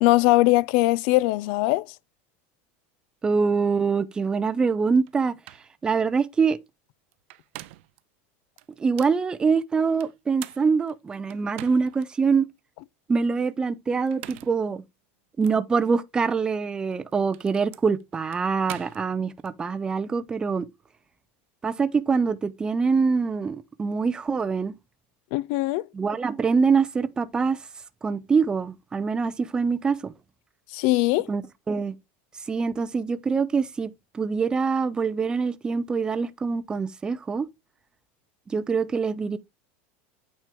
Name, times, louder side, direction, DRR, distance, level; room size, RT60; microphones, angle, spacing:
voice 1, 0.0-1.9 25.3-25.8 30.7-31.3, left 19 dB, 55° left, 0.3 m, -21 dB
voice 2, 3.2-5.4 5.8-6.6 8.8-12.5 13.1-14.8 15.4-20.7 21.6-24.7 25.9-27.6 28.0-30.1 31.3-31.9 32.5-33.9 34.1-37.5 38.5-39.4, right 5 dB, 10° right, 0.4 m, -24 dB
sound 1, 5.1-5.2 5.4-5.7 7.1-8.0 8.6-9.2 10.0-12.1 12.6-12.7 13.9-14.6 15.4-15.6 16.8-19.5, right 17 dB, 65° right, 0.6 m, -44 dB
8.9 x 4.4 x 3.5 m
supercardioid pair, 160°, 7 cm